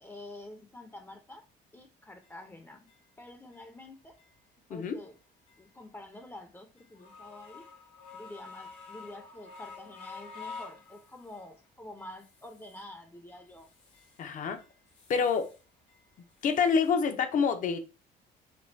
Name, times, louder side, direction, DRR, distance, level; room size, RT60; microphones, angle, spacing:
voice 1, 0.0-1.5 1.7-2.9 3.2-4.2 4.7-5.2 5.6-7.6 8.1-13.7, left 1 dB, 15° left, 0.6 m, -48 dB
sound 1, 2.2-2.3 2.9-3.0 3.5-3.6 4.2-4.3 4.8-5.0 5.5-5.6 6.1-6.2 6.8-11.5 12.0-12.9 13.3-14.2 14.6-15.6 15.9-16.9, left 5 dB, 80° left, 1.7 m, -49 dB
voice 2, 14.2-14.6 15.1-15.5 16.4-17.8, left 6 dB, 50° left, 0.7 m, -27 dB
5.2 x 2.3 x 2.7 m
cardioid pair, 110°, 17 cm